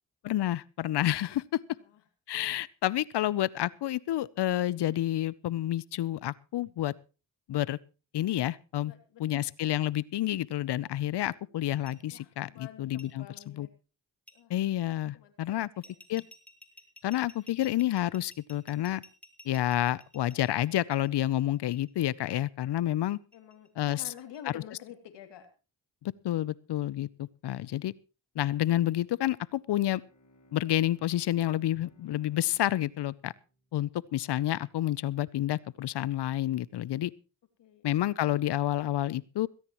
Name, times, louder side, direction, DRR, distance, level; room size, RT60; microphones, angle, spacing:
voice 1, 0.2-1.6 2.3-6.9 7.5-7.8 8.1-8.9 9.2-13.2 13.6-13.7 14.5-15.7 16.1-16.2 17.0-19.0 19.5-23.2 23.8-24.1 24.5-24.6 26.0-27.9 28.4-30.0 30.5-33.3 33.7-37.1 37.8-39.5, left 13 dB, 75° left, 0.7 m, -29 dB
voice 2, 8.8-9.5 11.4-11.5 12.1-13.7 14.3-14.5 15.1-15.7 23.3-25.5 37.6-37.8, left 10 dB, 90° left, 2.7 m, -48 dB
sound 1, 11.9-12.0 13.0-13.1 14.3-14.4 15.8-21.9 23.1-24.4, left 1 dB, 5° left, 3.6 m, -53 dB
Bowed string instrument, 29.9-34.4, left 1 dB, 45° left, 6.9 m, -64 dB
17.0 x 17.0 x 3.0 m
cardioid pair, 60°, 41 cm